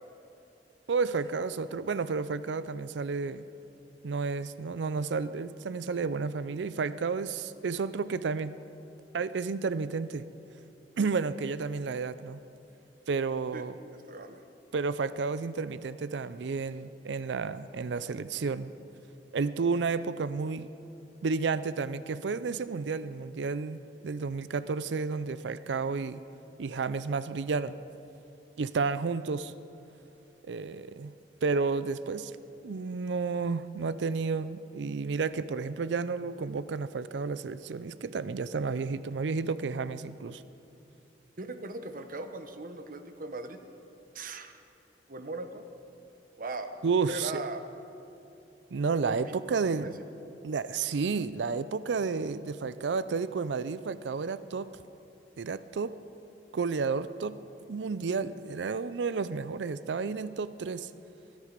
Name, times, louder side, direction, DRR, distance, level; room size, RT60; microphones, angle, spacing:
voice 1, 0.9-3.4 4.0-8.5 9.1-10.2 11.0-12.4 13.1-13.8 14.7-18.7 19.3-20.7 21.2-26.2 26.6-27.7 28.6-29.5 30.4-31.1 31.4-32.3 32.6-40.4 46.8-47.3 48.7-49.9 50.4-54.7 55.4-55.9 56.5-57.4 57.7-60.9, right 4 dB, 80° right, 15 dB, 0.5 m, -31 dB
voice 2, 13.9-14.4 41.4-43.6 44.1-44.6 45.1-45.7 46.4-46.8 47.1-47.6 49.0-49.9, right 2 dB, 50° right, 8 dB, 0.9 m, -39 dB
23.0 x 11.5 x 5.2 m, 2.8 s
head